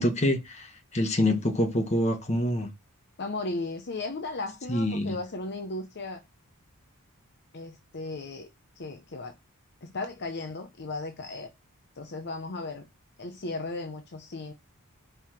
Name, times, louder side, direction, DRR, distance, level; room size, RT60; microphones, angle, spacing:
voice 1, 0.0-2.7 4.7-5.2, left 1 dB, 30° left, 1.3 m, -26 dB
voice 2, 3.2-6.2 7.5-8.5 8.8-9.3 9.8-11.5 12.0-12.9 13.2-14.5, left 2 dB, 50° left, 0.8 m, -36 dB
5.6 x 4.6 x 5.9 m
head